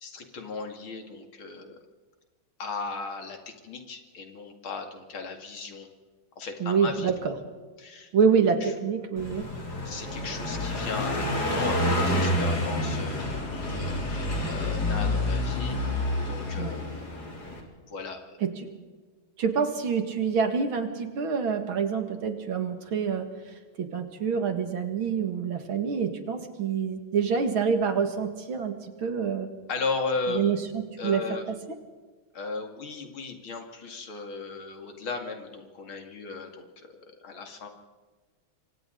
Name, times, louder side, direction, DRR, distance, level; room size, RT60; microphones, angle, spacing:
voice 1, 0.0-1.8 2.6-5.9 6.4-7.1 7.8-8.1 8.6-8.7 9.8-17.1 17.8-18.2 29.7-30.5 31.0-31.4 32.3-36.9 37.2-37.7, left 4 dB, 80° left, 4 dB, 3.1 m, -36 dB
voice 2, 6.6-7.3 8.1-9.5 16.6-16.8 18.4-18.7 19.4-23.3 23.8-29.5 30.3-31.6, right 6 dB, 80° right, 6 dB, 2.8 m, -27 dB
Car passing by, 9.2-17.6, left 1 dB, 50° left, 4.0 m, -28 dB
27.5 x 24.0 x 4.0 m, 1.4 s
omnidirectional pair, 2.2 m